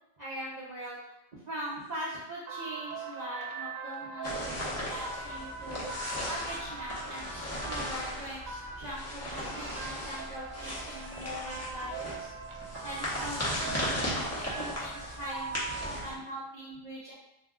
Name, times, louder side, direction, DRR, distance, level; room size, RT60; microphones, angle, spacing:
voice 1, 0.2-1.0 1.4-12.3 12.8-17.1, equal, 45° right, -9 dB, 0.6 m, -41 dB
sound 1, 2.5-16.2, right 4 dB, 85° right, 1.0 m, -42 dB
sound 2, 4.2-16.1, equal, 15° left, 0.5 m, -37 dB
2.7 x 2.2 x 3.5 m, 0.87 s
omnidirectional pair, 1.4 m